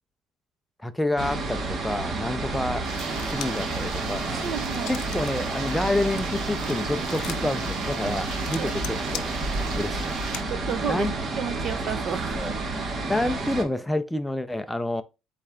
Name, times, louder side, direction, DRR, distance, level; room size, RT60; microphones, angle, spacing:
voice 1, 0.8-2.9 3.2-4.5 4.9-9.3 9.7-10.2 10.9-11.1 12.4-12.5 13.0-15.0, left 1 dB, 5° left, 0.4 m, -28 dB
sound 1, 1.2-13.6, right 3 dB, 35° right, 1.0 m, -30 dB
sound 2, 2.8-10.4, right 4 dB, 70° right, 1.0 m, -37 dB
sound 3, 3.0-3.7 4.1-5.4 5.7-10.4, left 12 dB, 75° left, 0.5 m, -41 dB
voice 2, 3.1-3.4 4.4-5.0 8.5-8.7 10.5-11.1 11.4-12.6, right 7 dB, 50° right, 0.6 m, -32 dB
4.3 x 3.2 x 3.5 m
cardioid pair, 110°, 0 cm